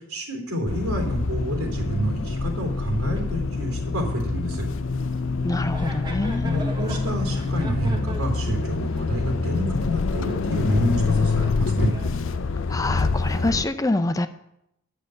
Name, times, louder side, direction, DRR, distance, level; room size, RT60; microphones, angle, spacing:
voice 1, 0.1-4.7 6.4-11.9, equal, 85° right, 2 dB, 3.5 m, -28 dB
sound 1, 0.7-13.7, left 4 dB, 60° left, 0.5 m, -26 dB
sound 2, 4.5-4.7 5.1-5.2 5.6-11.6 11.9-13.0, equal, 20° right, 1.4 m, -41 dB
voice 2, 5.4-6.7 12.7-14.3, left 2 dB, 15° left, 10 dB, 0.5 m, -26 dB
10.5 x 6.6 x 7.8 m, 0.80 s
head